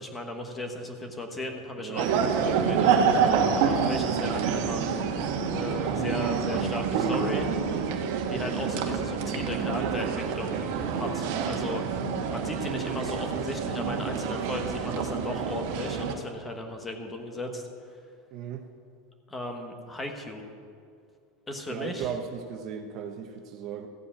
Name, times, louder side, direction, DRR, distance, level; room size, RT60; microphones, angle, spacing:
voice 1, 0.0-3.2 3.5-5.0 5.4-7.6 8.3-10.7 10.9-11.8 12.3-17.7 19.3-20.4 21.5-22.1, left 1 dB, 15° left, 4 dB, 1.2 m, -36 dB
voice 2, 1.8-2.1 18.3-18.6 21.7-23.9, right 8 dB, 45° right, 5 dB, 1.0 m, -36 dB
sound 1, 2.0-16.1, right 6 dB, 65° right, 1.3 m, -27 dB
15.0 x 5.2 x 8.6 m, 2.3 s
supercardioid pair, 145°, 0 cm